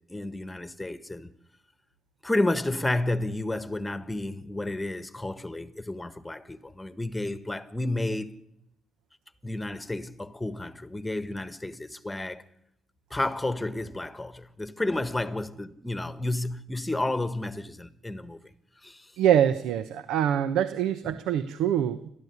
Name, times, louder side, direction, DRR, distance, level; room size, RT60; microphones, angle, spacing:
voice 1, 0.0-1.3 2.2-8.4 9.4-12.4 13.1-18.4 18.8-19.1 21.0-21.2, left 2 dB, 10° left, 1.5 m, -31 dB
voice 2, 19.2-22.1, right 10 dB, 90° right, 1.0 m, -24 dB
29.5 x 12.5 x 9.7 m
cardioid pair, 90°, 0 cm